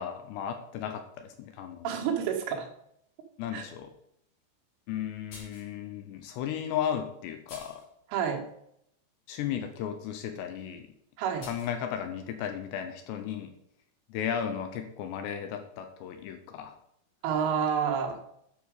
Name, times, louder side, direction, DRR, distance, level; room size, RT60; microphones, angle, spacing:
voice 1, 0.0-2.0 3.4-3.9 4.9-7.8 9.3-10.9 11.4-13.5 14.1-16.8, left 9 dB, 75° left, 7 dB, 2.7 m, -35 dB
voice 2, 1.8-2.7 3.5-3.6 8.1-8.4 11.2-11.5 17.2-18.2, right 7 dB, 90° right, 1 dB, 4.2 m, -29 dB
sound 1, 5.3-5.7 6.6-6.7 7.5-7.9 11.4-11.7, left 3 dB, 45° left, 4.3 m, -47 dB
10.0 x 6.2 x 6.5 m, 0.74 s
omnidirectional pair, 5.5 m